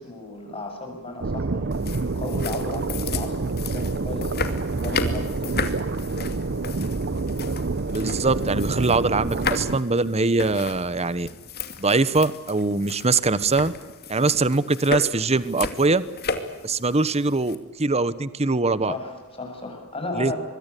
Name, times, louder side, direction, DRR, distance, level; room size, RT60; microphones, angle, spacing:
voice 1, 0.0-3.4 3.7-4.5 4.8-5.6 18.9-20.4, left 2 dB, 25° left, 4 dB, 7.5 m, -34 dB
sound 1, 1.2-9.8, right 3 dB, 50° right, 0.8 m, -27 dB
sound 2, 1.7-17.5, left 4 dB, 45° left, 2.5 m, -34 dB
voice 2, 7.9-11.3 11.8-13.7 14.1-16.0 16.6-18.9 20.1-20.3, right 3 dB, 30° right, 16 dB, 1.1 m, -22 dB
25.5 x 23.0 x 8.5 m, 1.1 s
head